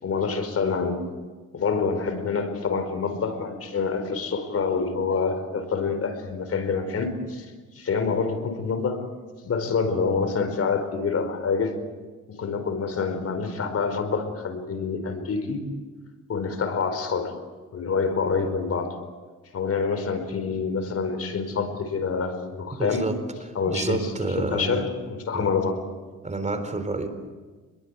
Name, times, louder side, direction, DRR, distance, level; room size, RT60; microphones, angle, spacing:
voice 1, 0.0-1.1 1.5-7.5 7.7-9.1 9.4-11.8 12.3-15.7 16.3-17.4 17.7-19.0 19.5-23.1 23.5-24.0 24.4-25.8, left 5 dB, 50° left, 8 dB, 4.7 m, -27 dB
voice 2, 22.8-24.9 25.3-25.5 26.2-27.1, right 2 dB, 25° right, 9 dB, 3.9 m, -29 dB
27.5 x 22.0 x 8.3 m, 1.3 s
cardioid pair, 90°, 30 cm